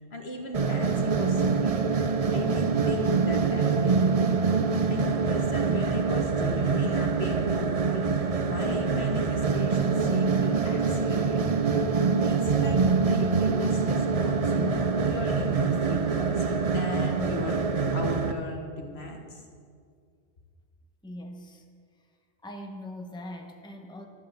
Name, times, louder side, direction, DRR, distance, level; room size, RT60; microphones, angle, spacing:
voice 1, 0.1-1.7 2.0-4.6 4.9-11.4 12.2-17.6 17.9-19.4, left 3 dB, 75° left, 2 dB, 1.9 m, -36 dB
sound 1, 0.5-18.3, right 5 dB, 40° right, 0.6 m, -25 dB
voice 2, 21.0-21.6 22.4-24.1, left 1 dB, 5° left, 3 dB, 1.0 m, -41 dB
12.5 x 10.5 x 7.0 m, 2.2 s
omnidirectional pair, 1.1 m